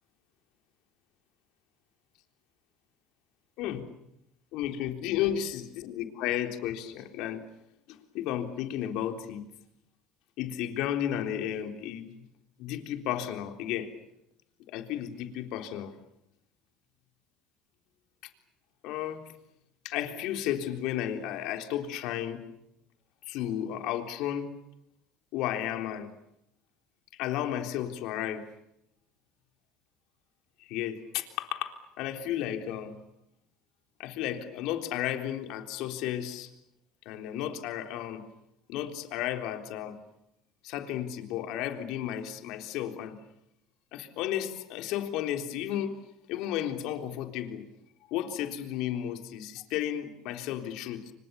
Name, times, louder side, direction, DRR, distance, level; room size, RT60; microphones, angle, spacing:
voice 1, 3.6-3.9 4.5-7.4 7.9-9.5 10.4-12.3 12.6-13.9 14.7-15.9 18.2-18.3 18.8-19.2 19.8-22.4 23.2-24.5 25.3-26.1 27.2-28.4 30.6-33.0 34.0-36.5 37.1-38.2 38.7-40.0 40.6-43.2 43.9-46.0 46.3-47.7 48.1-51.1, left 11 dB, 70° left, 6 dB, 3.7 m, -33 dB
29.0 x 26.0 x 7.0 m, 0.81 s
supercardioid pair, 90°, 0 cm